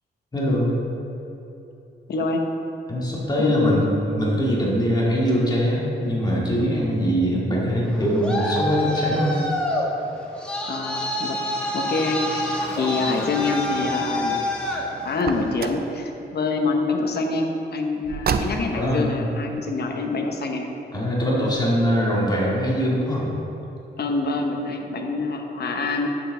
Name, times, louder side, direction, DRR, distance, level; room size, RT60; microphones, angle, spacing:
voice 1, 0.3-0.8 2.9-9.3 18.7-19.2 20.9-23.3, equal, 20° left, -5 dB, 1.9 m, -22 dB
voice 2, 2.1-2.4 3.4-3.9 10.7-11.4 11.7-12.4 12.8-14.4 15.0-20.7 24.0-26.1, left 3 dB, 60° left, 3 dB, 1.0 m, -25 dB
Traffic noise roadway noise, 7.8-15.6, left 1 dB, 5° left, 1.2 m, -27 dB
Car, 15.1-15.9 18.0-18.9, right 5 dB, 55° right, 0.5 m, -28 dB
9.2 x 6.9 x 3.9 m, 3.0 s
cardioid pair, 105°, 19 cm